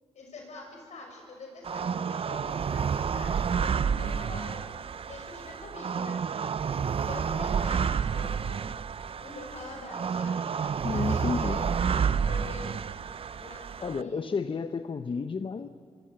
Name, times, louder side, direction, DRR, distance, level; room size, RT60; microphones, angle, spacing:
voice 1, 0.1-4.7 5.1-6.2 7.0-8.8 9.2-10.5 10.9-11.8 12.1-13.0 13.4-14.2, left 3 dB, 80° left, 2 dB, 6.3 m, -45 dB
sound 1, 1.6-14.0, right 6 dB, 55° right, 0.5 m, -30 dB
voice 2, 10.8-11.6 13.8-15.7, left 5 dB, 50° left, 9 dB, 0.8 m, -31 dB
24.5 x 23.5 x 7.9 m, 2.1 s
cardioid pair, 75°, 12 cm